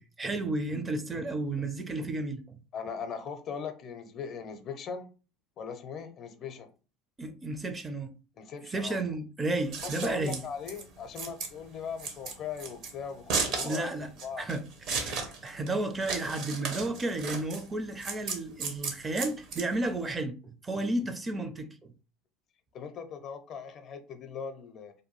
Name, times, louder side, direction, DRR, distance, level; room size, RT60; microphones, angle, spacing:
voice 1, 0.0-2.6 7.2-8.1 8.7-10.4 13.6-14.1 14.4-14.6 14.9-21.9, right 2 dB, 25° right, 0.4 m, -32 dB
voice 2, 2.7-5.1 5.6-6.7 8.4-9.0 9.8-14.4 22.7-24.9, left 6 dB, 50° left, 0.5 m, -39 dB
Scissors, 9.5-20.1, right 4 dB, 60° right, 0.8 m, -35 dB
2.6 x 2.2 x 3.1 m
hypercardioid pair, 85°, 0 cm